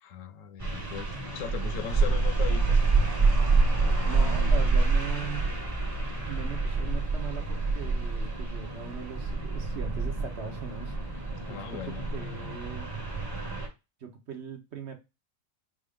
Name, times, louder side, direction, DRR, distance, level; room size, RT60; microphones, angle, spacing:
voice 1, 0.0-2.8 11.5-12.0, left 9 dB, 75° left, 0.9 m, -38 dB
sound 1, 0.6-13.7, right 3 dB, 15° right, 1.2 m, -27 dB
voice 2, 4.0-5.6 6.3-11.0 11.5-12.9 14.0-15.0, right 6 dB, 55° right, 1.1 m, -40 dB
5.2 x 2.5 x 3.5 m
omnidirectional pair, 1.4 m